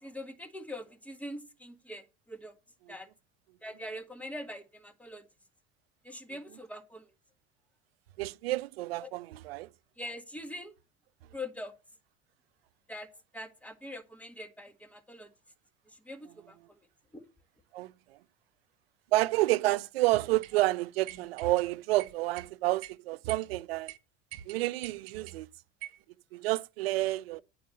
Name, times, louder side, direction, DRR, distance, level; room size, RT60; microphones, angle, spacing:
voice 1, 0.0-2.5 2.9-3.1 3.6-5.2 6.0-7.1 9.0-9.1 10.0-10.7 11.3-11.7 12.9-13.1 13.3-15.3 16.0-16.6 17.1-17.2 19.7-19.8, left 1 dB, 5° left, 1.7 m, -43 dB
voice 2, 8.2-9.7 17.7-17.9 19.1-23.9 24.5-25.5 26.3-27.4, right 18 dB, 85° right, 0.5 m, -29 dB
sound 1, 20.4-20.6 21.1-21.7 22.0-22.5 22.8-22.9 23.3-23.5 23.9-24.0 24.3-25.4 25.8-26.0, right 16 dB, 70° right, 1.0 m, -45 dB
9.5 x 4.7 x 7.7 m
supercardioid pair, 100°, 29 cm